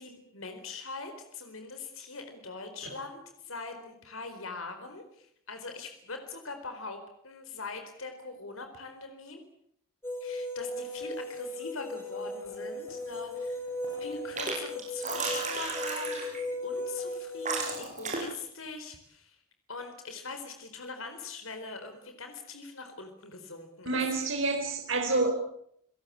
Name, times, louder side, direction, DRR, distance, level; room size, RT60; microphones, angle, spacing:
voice 1, 0.0-9.4 10.2-13.6 14.0-16.3 16.6-19.4 19.7-24.0, left 3 dB, 80° left, 7 dB, 4.2 m, -42 dB
sound 1, 10.0-17.7, left 1 dB, 10° left, 4.6 m, -37 dB
sound 2, 12.9-13.4 13.7-14.5 14.8-16.4 17.1-17.2 17.4-18.4, right 4 dB, 35° right, 8.0 m, -34 dB
voice 2, 23.9-25.3, right 3 dB, 65° right, 3 dB, 4.2 m, -28 dB
29.5 x 18.0 x 8.6 m, 0.72 s
head